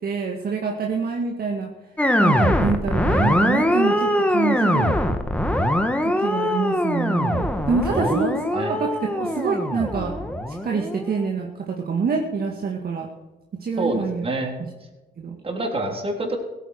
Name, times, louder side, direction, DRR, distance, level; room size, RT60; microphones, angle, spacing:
voice 1, 0.0-1.7 2.2-5.0 6.0-10.2 10.6-13.1 13.6-14.2 14.6-14.7 15.2-15.4, right 5 dB, 50° right, 1 dB, 2.1 m, -26 dB
sound 1, 2.0-11.3, left 1 dB, 5° left, 1.6 m, -22 dB
voice 2, 7.9-8.2 8.5-8.8 13.8-14.5 15.4-16.4, right 2 dB, 30° right, 2 dB, 3.9 m, -27 dB
16.0 x 9.5 x 6.6 m, 1.1 s
cardioid pair, 90°, 20 cm